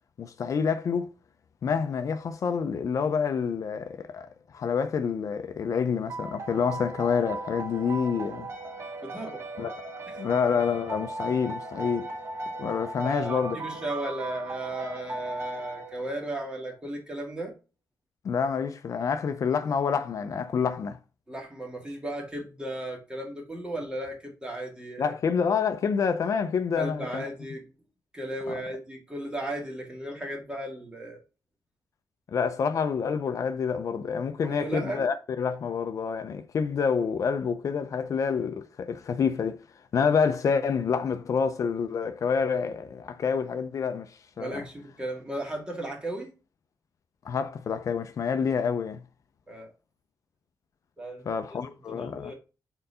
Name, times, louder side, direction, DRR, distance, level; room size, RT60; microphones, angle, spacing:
voice 1, 0.2-1.1 1.6-4.3 4.5-8.5 9.6-9.7 10.2-12.1 12.6-13.6 18.2-21.0 25.0-27.2 28.5-28.6 32.3-39.6 39.9-44.6 47.2-49.0 51.3-52.3, left 6 dB, 55° left, 0.5 m, -27 dB
sound 1, 6.1-16.5, right 2 dB, 40° right, 1.0 m, -37 dB
voice 2, 9.0-9.4 13.0-17.5 21.3-25.1 26.8-27.6 28.1-31.2 34.4-35.1 44.4-46.3 49.5-49.7 51.0-51.3 51.5-52.3, right 1 dB, 15° right, 1.8 m, -35 dB
4.5 x 3.9 x 5.4 m
wide cardioid pair, 140°, 7 cm